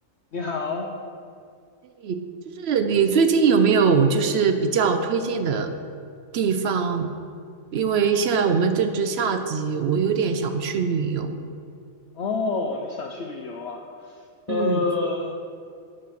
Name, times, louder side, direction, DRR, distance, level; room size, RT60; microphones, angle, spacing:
voice 1, 0.3-0.9 12.1-14.2 14.5-15.4, left 4 dB, 60° left, 1 dB, 0.8 m, -28 dB
voice 2, 2.6-5.7 6.3-7.1 7.7-11.4 14.5-14.8, right 5 dB, 60° right, 8 dB, 0.7 m, -22 dB
10.0 x 4.2 x 6.3 m, 2.3 s
omnidirectional pair, 1.5 m